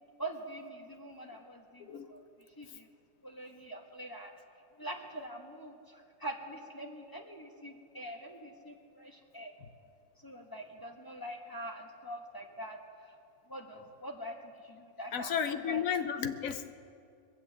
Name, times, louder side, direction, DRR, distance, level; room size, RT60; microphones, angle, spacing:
voice 1, 0.2-2.2 2.6-2.9 3.2-4.3 4.8-9.5 10.2-13.1 13.5-15.8, right 1 dB, 15° left, 2 dB, 1.2 m, -44 dB
voice 2, 15.1-16.7, left 7 dB, 75° left, 9 dB, 1.2 m, -33 dB
22.0 x 8.0 x 7.9 m, 2.4 s
omnidirectional pair, 1.4 m